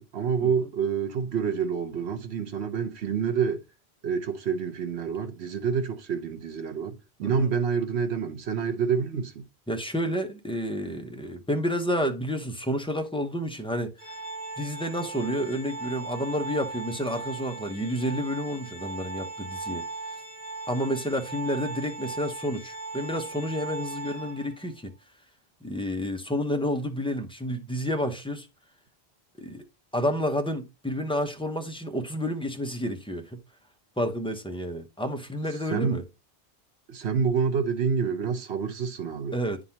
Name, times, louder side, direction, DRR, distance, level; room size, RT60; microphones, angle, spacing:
voice 1, 0.0-3.6 4.0-9.5 35.7-36.0 36.9-39.4, right 6 dB, 85° right, 1.2 m, -28 dB
voice 2, 9.7-13.9 14.6-19.9 20.7-24.9 25.6-28.5 29.4-29.6 29.9-33.4 34.0-36.0 39.3-39.6, equal, 5° left, 0.6 m, -30 dB
Organ, 14.0-24.7, right 3 dB, 35° right, 2.4 m, -38 dB
9.7 x 3.8 x 2.8 m
omnidirectional pair, 1.1 m